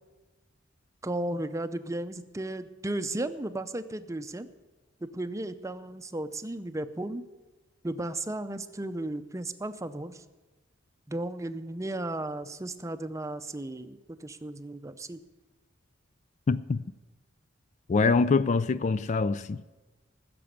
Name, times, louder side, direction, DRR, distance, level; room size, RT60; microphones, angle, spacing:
voice 1, 1.0-4.5 5.0-7.2 7.8-10.2 11.1-15.2, right 1 dB, 15° right, 0.6 m, -35 dB
voice 2, 16.5-16.8 17.9-19.7, left 4 dB, 35° left, 0.3 m, -25 dB
15.5 x 6.9 x 8.7 m
head